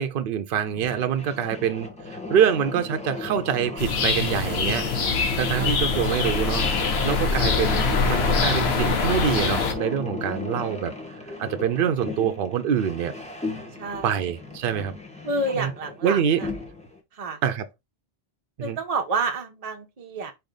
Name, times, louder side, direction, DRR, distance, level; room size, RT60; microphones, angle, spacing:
voice 1, 0.0-4.9 5.4-6.7 7.0-10.9 11.4-13.1 14.0-14.9 15.5-15.7 16.0-16.4 17.4-17.7 18.6-18.8, right 8 dB, 70° right, 0.7 m, -25 dB
sound 1, 0.6-17.0, left 3 dB, 5° left, 1.1 m, -35 dB
sound 2, 3.8-9.7, left 4 dB, 90° left, 1.1 m, -24 dB
voice 2, 5.6-5.9 13.8-14.2 15.2-16.2 17.2-17.4 18.6-20.3, right 3 dB, 40° right, 0.8 m, -29 dB
4.2 x 3.3 x 3.8 m
omnidirectional pair, 1.0 m